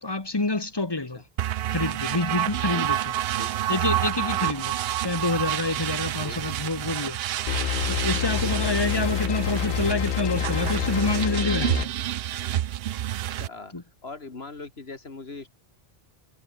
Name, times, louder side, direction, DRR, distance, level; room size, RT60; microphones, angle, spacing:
voice 1, 0.0-1.2 1.7-3.0 3.7-4.7 5.0-7.2 7.6-11.9 13.7-13.8, left 2 dB, 25° left, 1.5 m, -27 dB
sound 1, 1.4-13.5, right 12 dB, 75° right, 0.8 m, -29 dB
sound 2, 7.5-11.9, left 11 dB, 60° left, 0.6 m, -28 dB
voice 2, 8.4-8.7 13.4-13.8 14.0-15.5, left 3 dB, 75° left, 2.6 m, -40 dB
omnidirectional pair, 1.1 m